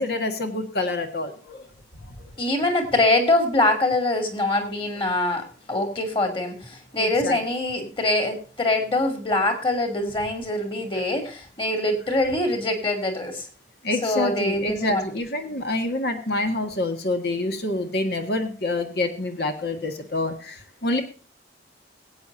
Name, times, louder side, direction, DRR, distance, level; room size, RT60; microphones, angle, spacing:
voice 1, 0.0-1.7 2.0-2.1 7.0-7.4 10.9-11.0 13.8-21.0, left 2 dB, 60° left, 5 dB, 1.8 m, -27 dB
voice 2, 2.4-13.5 14.0-15.1, left 2 dB, 30° left, 5 dB, 2.8 m, -24 dB
21.5 x 8.6 x 2.7 m, 0.39 s
head